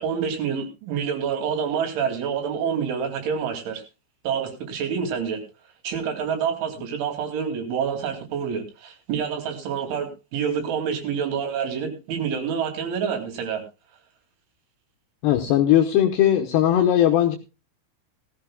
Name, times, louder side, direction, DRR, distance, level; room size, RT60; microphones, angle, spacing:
voice 1, 0.0-3.8 4.2-5.4 5.8-13.6, right 7 dB, 70° right, 4 dB, 4.8 m, -27 dB
voice 2, 15.2-17.4, left 11 dB, 75° left, 4 dB, 2.5 m, -19 dB
18.0 x 15.0 x 2.3 m, 0.27 s
omnidirectional pair, 5.9 m